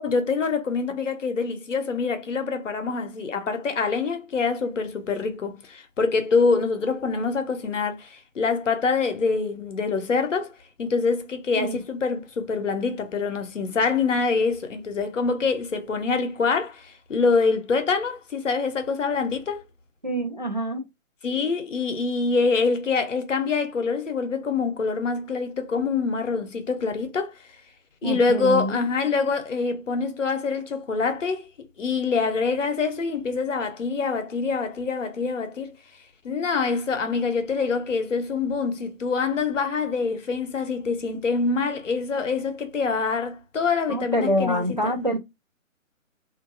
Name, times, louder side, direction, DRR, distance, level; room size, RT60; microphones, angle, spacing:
voice 1, 0.0-10.5 10.8-19.6 21.2-27.3 28.0-31.5 31.8-35.7 36.2-45.2, left 4 dB, 60° left, 0.8 m, -25 dB
voice 2, 20.0-20.9 28.0-28.8 43.9-45.2, equal, 35° right, 0.4 m, -26 dB
2.6 x 2.5 x 2.5 m
figure-of-eight pair, 140°, 42 cm